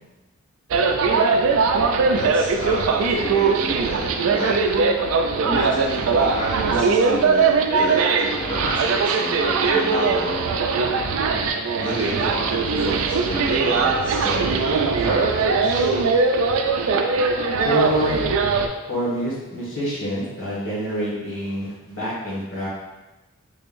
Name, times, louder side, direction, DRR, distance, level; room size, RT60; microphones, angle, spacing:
sound 1, 0.7-18.7, right 4 dB, 75° right, 0.3 m, -20 dB
voice 1, 2.1-4.6 5.4-10.5 11.7-15.9, left 1 dB, 20° left, -8 dB, 0.6 m, -30 dB
voice 2, 17.6-18.2 18.9-22.7, equal, 75° left, -7 dB, 1.4 m, -26 dB
3.5 x 3.4 x 2.5 m, 1.1 s
head